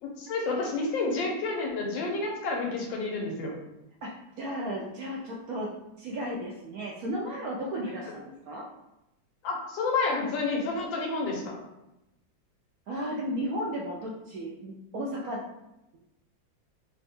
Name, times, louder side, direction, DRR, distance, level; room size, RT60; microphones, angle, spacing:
voice 1, 0.0-3.5 9.4-11.5, left 3 dB, 85° left, 0 dB, 1.6 m, -30 dB
voice 2, 4.4-5.7 6.0-8.6 12.9-15.5, equal, 70° right, -3 dB, 0.9 m, -34 dB
3.5 x 2.1 x 4.2 m, 0.91 s
omnidirectional pair, 2.0 m